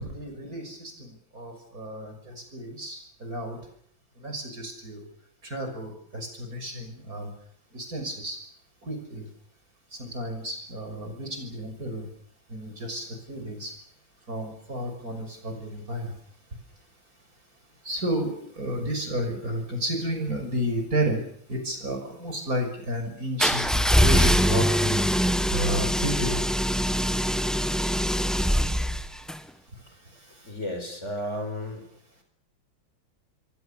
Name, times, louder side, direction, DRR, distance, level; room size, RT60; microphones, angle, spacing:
voice 1, 0.0-3.6 4.2-5.0 5.5-7.3 7.7-8.4 8.8-9.2 10.0-12.0 12.5-13.7 14.3-16.1 17.8-21.2 21.5-25.0 25.5-26.4, right 1 dB, 45° right, 5 dB, 6.7 m, -32 dB
sound 1, 23.4-29.4, equal, ahead, 1.1 m, -23 dB
voice 2, 30.4-31.8, left 1 dB, 35° left, 6 dB, 5.8 m, -33 dB
27.5 x 23.5 x 7.0 m, 0.64 s
omnidirectional pair, 2.2 m